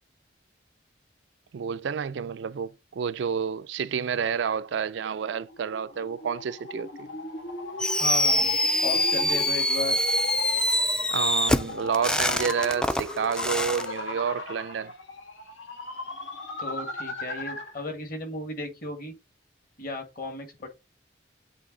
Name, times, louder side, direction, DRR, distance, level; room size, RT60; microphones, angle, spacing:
voice 1, 1.5-7.1 11.1-14.9, right 7 dB, 70° right, 0.4 m, -29 dB
sound 1, 5.1-17.8, left 2 dB, 85° left, 2.1 m, -37 dB
Fireworks, 7.8-13.8, left 1 dB, 5° left, 0.3 m, -25 dB
voice 2, 8.0-8.6 8.8-10.0 16.6-19.1 19.8-20.7, left 2 dB, 45° left, 1.8 m, -35 dB
8.3 x 3.3 x 3.8 m
head